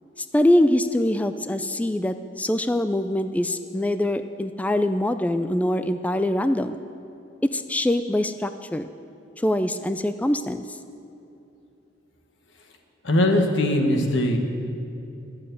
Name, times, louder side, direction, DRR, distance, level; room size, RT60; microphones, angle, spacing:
voice 1, 0.2-6.8 7.5-8.9 9.4-10.6, left 1 dB, 10° left, 10 dB, 0.3 m, -23 dB
voice 2, 13.0-14.4, left 1 dB, 85° left, 3 dB, 1.5 m, -20 dB
11.5 x 7.6 x 9.3 m, 2.7 s
head